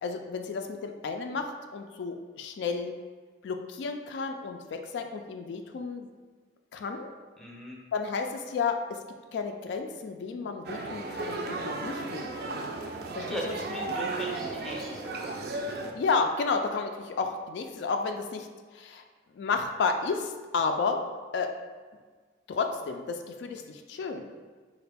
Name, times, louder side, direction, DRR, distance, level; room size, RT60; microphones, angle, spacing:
voice 1, 0.0-1.4 1.7-2.9 3.4-6.1 6.7-7.1 7.9-8.8 9.3-12.7 13.1-13.5 15.9-18.5 18.7-19.0 19.3-21.0 21.3-21.5 22.5-24.4, left 4 dB, 80° left, 5 dB, 0.3 m, -32 dB
voice 2, 7.4-7.8 13.3-15.1, equal, 5° left, -3 dB, 0.5 m, -38 dB
sound 1, 10.6-15.9, right 3 dB, 55° right, 0.3 m, -35 dB
3.9 x 2.5 x 3.4 m, 1.5 s
head